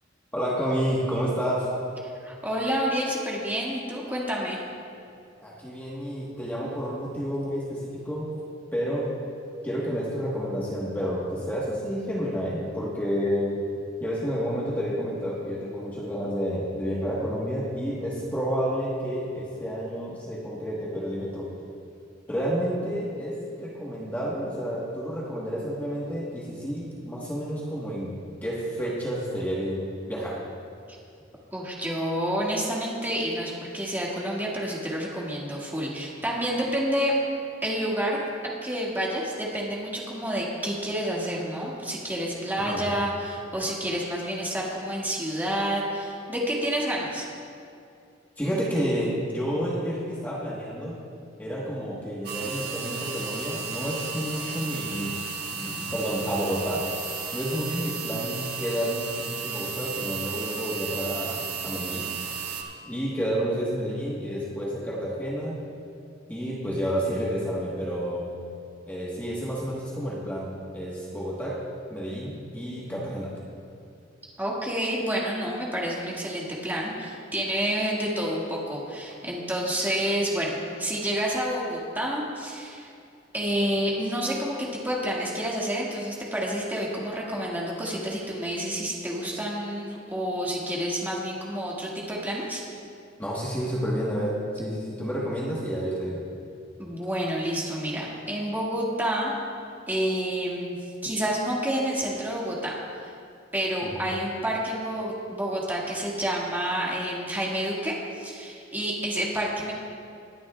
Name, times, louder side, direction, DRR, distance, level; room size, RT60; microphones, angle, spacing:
voice 1, 0.3-1.7 5.4-8.3 8.7-9.1 9.6-13.6 14.0-21.5 22.3-28.1 28.4-30.4 42.5-42.8 48.4-51.0 51.4-55.2 55.5-56.8 57.3-62.1 62.9-65.6 66.3-68.2 68.9-71.6 71.9-73.3 93.2-96.2 103.8-104.1, equal, 10° left, -6 dB, 1.4 m, -30 dB
voice 2, 2.2-4.7 30.9-31.0 31.5-37.1 37.6-38.2 38.4-47.3 74.4-82.9 83.3-92.6 96.8-99.4 99.9-103.1 103.5-109.7, equal, 10° right, -4 dB, 1.9 m, -29 dB
sound 1, 52.2-62.6, right 5 dB, 60° right, 1.5 m, -34 dB
21.5 x 10.5 x 2.4 m, 2.5 s
head